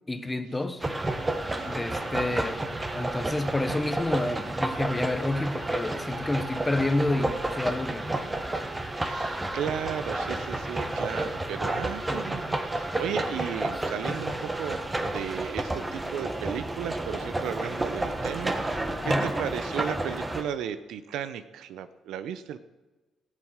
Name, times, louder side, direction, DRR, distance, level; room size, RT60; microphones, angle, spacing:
voice 1, 0.1-0.8 1.6-2.6 2.9-8.3 19.0-19.3, left 2 dB, 15° left, 1.1 m, -29 dB
sound 1, 0.8-20.4, right 2 dB, 15° right, 1.5 m, -31 dB
voice 2, 1.5-2.3 8.9-22.6, right 8 dB, 85° right, 0.8 m, -35 dB
15.5 x 7.6 x 6.5 m
cardioid pair, 90°, 0 cm